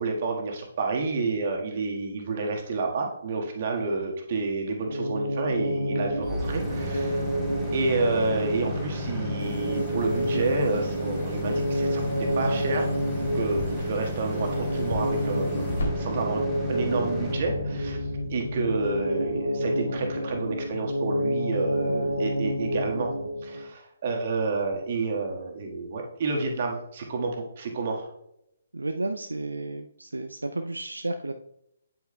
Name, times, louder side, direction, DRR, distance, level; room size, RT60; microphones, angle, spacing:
voice 1, 0.0-7.2 7.7-12.9 13.3-16.4 16.7-18.0 18.3-23.1 23.4-28.1, right 3 dB, 40° right, 2 dB, 1.5 m, -29 dB
sound 1, 4.8-23.6, equal, 90° left, 0.9 m, -29 dB
sound 2, 6.2-20.2, equal, 5° right, 2.3 m, -35 dB
sound 3, 9.4-15.9, left 1 dB, 55° left, 2.8 m, -39 dB
voice 2, 28.7-31.3, right 2 dB, 75° right, 6 dB, 0.4 m, -32 dB
9.0 x 8.2 x 2.2 m, 0.79 s
figure-of-eight pair, 135°, 0 cm